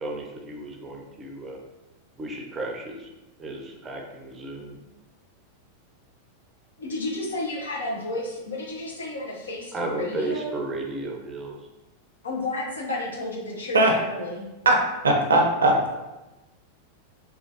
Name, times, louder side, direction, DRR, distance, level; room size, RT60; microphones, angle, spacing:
voice 1, 0.0-1.6 2.2-3.1 3.4-4.8 9.7-11.6, right 2 dB, 20° right, 1 dB, 0.5 m, -33 dB
voice 2, 6.8-10.5 12.2-14.5, left 2 dB, 70° left, -2 dB, 0.6 m, -32 dB
voice 3, 15.0-15.9, right 2 dB, 70° right, 1 dB, 0.5 m, -19 dB
3.1 x 2.3 x 2.8 m, 1.0 s
figure-of-eight pair, 90°, 0 cm